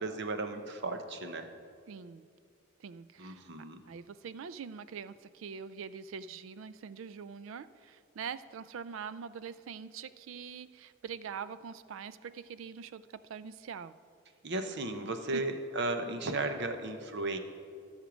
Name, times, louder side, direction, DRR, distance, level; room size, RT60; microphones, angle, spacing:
voice 1, 0.0-1.5 3.2-3.8 14.4-17.4, right 2 dB, 60° right, 7 dB, 0.8 m, -35 dB
voice 2, 1.9-2.2 2.8-3.4 3.9-13.9 15.0-15.4, right 6 dB, 80° right, 15 dB, 0.4 m, -44 dB
13.5 x 6.5 x 5.1 m, 2.3 s
head